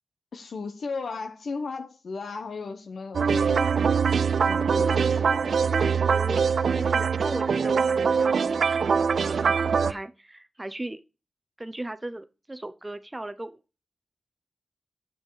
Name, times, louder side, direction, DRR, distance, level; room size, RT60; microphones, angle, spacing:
voice 1, 0.3-3.8 4.4-5.6, left 4 dB, 80° left, 1.0 m, -36 dB
sound 1, 3.1-9.9, right 6 dB, 85° right, 0.4 m, -23 dB
voice 2, 4.7-5.2 5.7-11.0 11.6-13.6, right 1 dB, 20° right, 0.6 m, -37 dB
7.9 x 7.2 x 4.8 m
wide cardioid pair, 110°, 0 cm